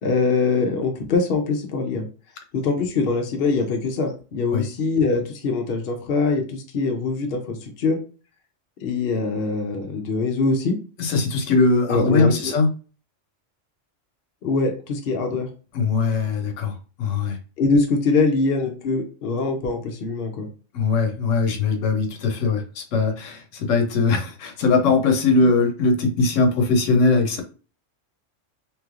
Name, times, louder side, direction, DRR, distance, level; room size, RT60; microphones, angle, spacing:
voice 1, 0.0-2.1 2.5-8.0 8.8-10.8 11.9-12.5 14.4-15.5 17.6-20.5, left 4 dB, 55° left, 3 dB, 0.8 m, -23 dB
voice 2, 11.0-12.7 15.7-17.4 20.7-27.4, left 3 dB, 90° left, 6 dB, 1.0 m, -20 dB
3.1 x 3.0 x 2.4 m, 0.36 s
omnidirectional pair, 1.3 m